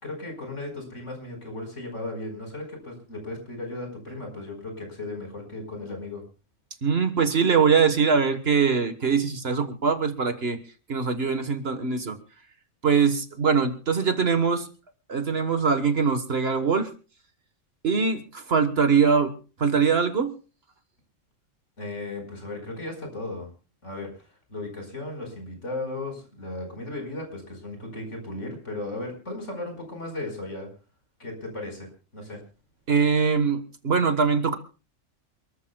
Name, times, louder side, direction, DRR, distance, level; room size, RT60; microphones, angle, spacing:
voice 1, 0.0-6.2 21.8-23.5 23.8-24.1 24.5-30.7 31.2-32.4, left 2 dB, 65° left, 4 dB, 5.3 m, -36 dB
voice 2, 6.8-10.6 10.9-12.2 12.8-14.7 15.1-16.9 17.8-19.3 19.6-20.3 32.9-34.6, right 5 dB, 50° right, 9 dB, 1.5 m, -22 dB
28.0 x 14.0 x 2.3 m, 0.35 s
omnidirectional pair, 1.4 m